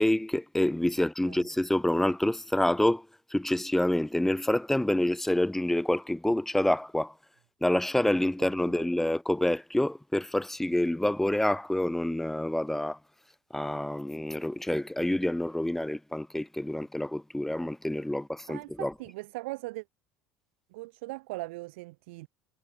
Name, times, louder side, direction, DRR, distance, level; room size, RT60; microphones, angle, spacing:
voice 1, 0.0-3.1 3.3-7.1 7.6-13.0 13.5-18.9, left 1 dB, 5° left, 0.5 m, -27 dB
voice 2, 8.6-8.9 18.5-19.8 20.7-22.3, right 22 dB, 75° right, 1.7 m, -40 dB
hypercardioid pair, 75°, 7 cm